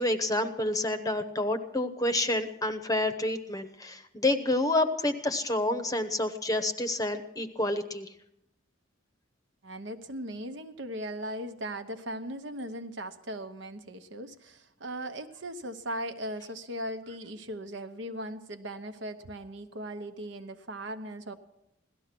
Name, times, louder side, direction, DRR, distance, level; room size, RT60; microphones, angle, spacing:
voice 1, 0.0-8.1, left 2 dB, 20° left, 10 dB, 0.8 m, -28 dB
voice 2, 9.6-21.3, right 1 dB, 65° right, 8 dB, 1.1 m, -38 dB
17.5 x 13.0 x 6.0 m, 0.82 s
head